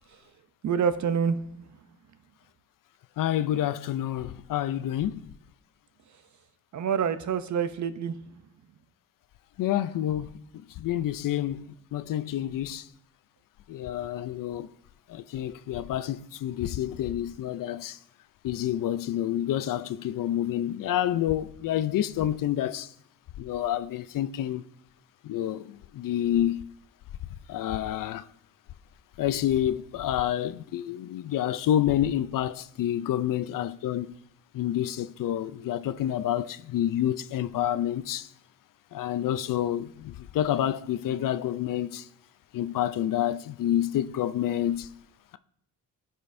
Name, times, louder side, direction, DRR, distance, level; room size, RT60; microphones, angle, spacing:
voice 1, 0.6-1.7 6.7-8.2, right 7 dB, 55° right, 0.6 m, -27 dB
voice 2, 3.2-5.2 9.6-10.3 10.8-11.6 11.9-12.9 13.7-14.7 15.1-18.0 18.4-22.9 23.4-24.6 25.2-26.6 27.5-28.3 29.2-34.1 34.5-38.3 38.9-42.0 42.5-44.9, left 11 dB, 65° left, 0.5 m, -28 dB
15.0 x 5.2 x 2.6 m
cardioid pair, 105°, 35 cm